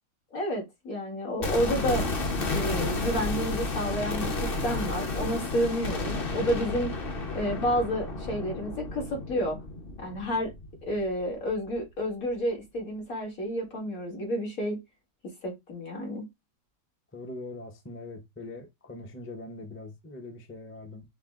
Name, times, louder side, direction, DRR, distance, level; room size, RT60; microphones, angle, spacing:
voice 1, 0.3-2.0 2.5-6.9 7.3-9.6 10.0-10.5 10.9-14.8 15.4-16.3, equal, 80° left, 2.5 m, -30 dB
sound 1, 1.4-11.4 11.7-11.8, left 2 dB, 45° left, 1.0 m, -32 dB
voice 2, 17.1-21.0, left 2 dB, 15° left, 0.5 m, -42 dB
5.7 x 2.2 x 3.6 m
omnidirectional pair, 1.5 m